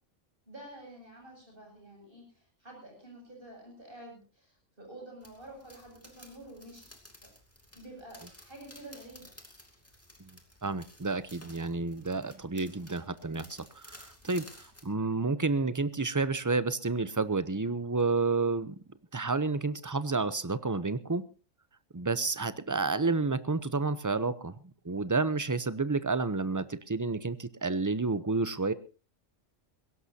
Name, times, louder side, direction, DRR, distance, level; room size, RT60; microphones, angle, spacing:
voice 1, 0.5-6.9 7.7-9.3, right 1 dB, 45° right, 1 dB, 7.8 m, -49 dB
sound 1, 5.2-14.9, left 1 dB, 10° left, 2.6 m, -55 dB
voice 2, 10.6-18.8 19.1-21.2 21.9-24.6 24.8-28.7, right 3 dB, 20° right, 14 dB, 0.6 m, -30 dB
22.0 x 17.0 x 2.8 m, 0.34 s
omnidirectional pair, 1.3 m